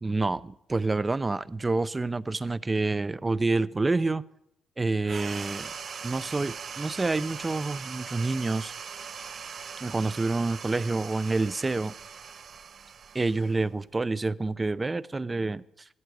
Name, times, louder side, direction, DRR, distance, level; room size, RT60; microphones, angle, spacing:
voice 1, 0.0-4.2 4.8-5.7 6.0-8.7 9.8-11.9 13.1-15.6, right 3 dB, 20° right, 16 dB, 0.6 m, -28 dB
sound 1, 5.0-13.9, right 6 dB, 50° right, 0.7 m, -40 dB
17.0 x 14.0 x 4.9 m, 0.76 s
cardioid pair, 90°, 0 cm